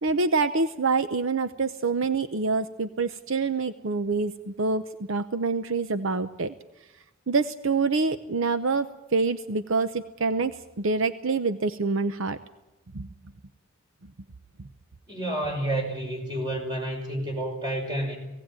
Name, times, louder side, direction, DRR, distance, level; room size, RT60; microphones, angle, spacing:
voice 1, 0.0-4.8 5.1-6.5 7.3-12.4 12.9-13.1, right 4 dB, 70° right, 11 dB, 0.8 m, -26 dB
voice 2, 15.1-18.2, right 1 dB, 20° right, 1 dB, 5.7 m, -30 dB
17.5 x 17.5 x 8.9 m, 0.97 s
head